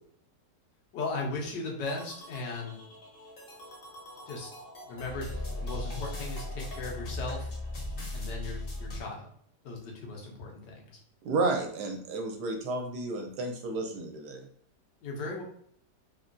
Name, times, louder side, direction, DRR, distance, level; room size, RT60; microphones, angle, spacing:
voice 1, 0.9-2.9 4.3-4.5 4.9-7.5 8.1-9.3 9.6-10.9 15.0-15.4, left 3 dB, 85° left, -1 dB, 1.4 m, -37 dB
sound 1, 1.8-9.0, left 1 dB, 45° left, 0.7 m, -39 dB
voice 2, 11.2-14.5, right 3 dB, 75° right, 3 dB, 1.2 m, -32 dB
3.3 x 2.2 x 2.5 m, 0.64 s
omnidirectional pair, 1.8 m